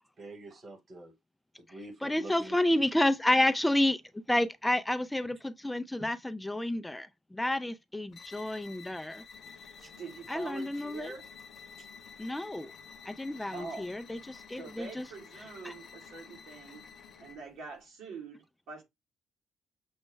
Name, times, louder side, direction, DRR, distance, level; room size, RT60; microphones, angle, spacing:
voice 1, 0.2-1.1 1.6-2.6 9.8-9.9 11.8-11.9, right 1 dB, 40° right, 1.1 m, -46 dB
voice 2, 2.0-4.0 4.3-9.2 10.3-11.1 12.2-12.7 13.1-15.1 15.6-15.7, left 1 dB, 10° left, 0.3 m, -30 dB
sound 1, 8.1-17.5, left 5 dB, 60° left, 0.8 m, -51 dB
sound 2, 9.3-17.4, left 8 dB, 85° left, 0.4 m, -58 dB
voice 3, 10.0-11.2 13.5-13.9 14.6-16.8 17.2-18.8, right 4 dB, 85° right, 1.8 m, -44 dB
6.2 x 2.1 x 3.2 m
cardioid pair, 90°, 0 cm